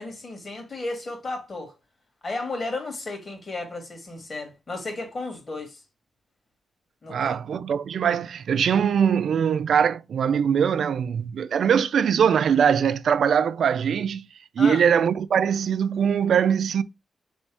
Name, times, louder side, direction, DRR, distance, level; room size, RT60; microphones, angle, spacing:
voice 1, 0.0-1.7 2.2-5.8 7.0-7.3 14.6-14.8, left 2 dB, 40° left, 2.0 m, -33 dB
voice 2, 7.1-14.3 14.6-16.8, right 7 dB, 75° right, 0.4 m, -22 dB
4.1 x 3.5 x 3.4 m
cardioid pair, 75°, 0 cm